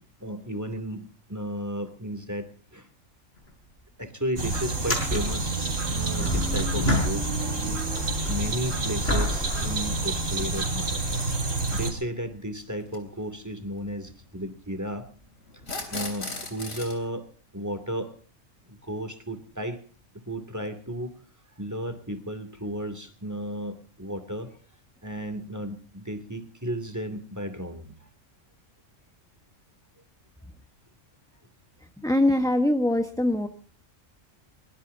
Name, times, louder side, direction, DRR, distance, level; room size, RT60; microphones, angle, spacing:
voice 1, 0.2-2.9 4.0-7.8 8.3-15.1 15.9-17.3 17.5-18.1 18.6-19.8 20.1-21.2 21.6-24.6 25.0-28.0, equal, 15° right, 10 dB, 2.6 m, -34 dB
sound 1, 3.4-3.5 3.8-3.9 4.7-7.6 7.9-10.6 11.3-11.4 15.5-15.6 17.0-17.1, left 1 dB, 50° left, 5.8 m, -30 dB
sound 2, 4.4-11.9, right 2 dB, 70° right, 3.7 m, -28 dB
sound 3, 11.3-11.4 12.8-13.0 15.6-17.0, left 3 dB, 85° left, 4.0 m, -35 dB
voice 2, 32.0-33.5, left 1 dB, 5° left, 6 dB, 1.1 m, -23 dB
22.5 x 20.5 x 2.7 m, 0.40 s
omnidirectional pair, 1.4 m